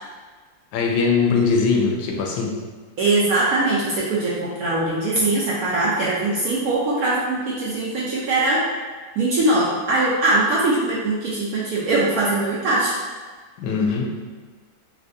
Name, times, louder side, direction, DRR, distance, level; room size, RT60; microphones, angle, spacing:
voice 1, 0.7-2.5 13.6-14.1, left 5 dB, 90° left, 1 dB, 1.3 m, -21 dB
voice 2, 3.0-8.6 9.2-12.9, right 2 dB, 70° right, -6 dB, 0.8 m, -21 dB
4.4 x 2.4 x 2.5 m, 1.4 s
omnidirectional pair, 2.0 m